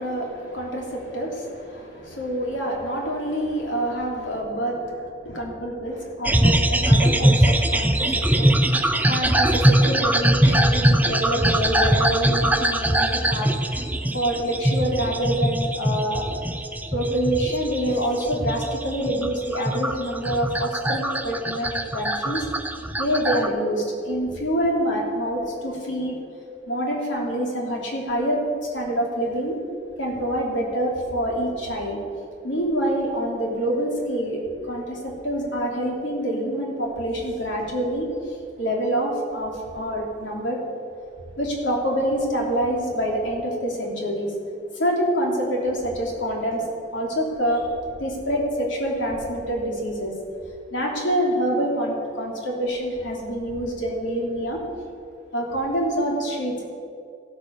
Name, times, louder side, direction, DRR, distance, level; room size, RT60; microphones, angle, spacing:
voice 1, 0.0-13.8 14.1-16.2 16.9-22.5 23.0-26.2 26.7-28.4 28.7-29.6 30.0-32.0 32.4-40.6 41.4-44.3 44.7-46.7 46.9-47.7 48.0-50.1 50.7-54.6 55.3-56.6, equal, 85° left, -1 dB, 3.1 m, -26 dB
sound 1, 6.2-23.5, right 1 dB, 10° right, 0.6 m, -21 dB
15.0 x 8.4 x 6.8 m, 2.4 s
head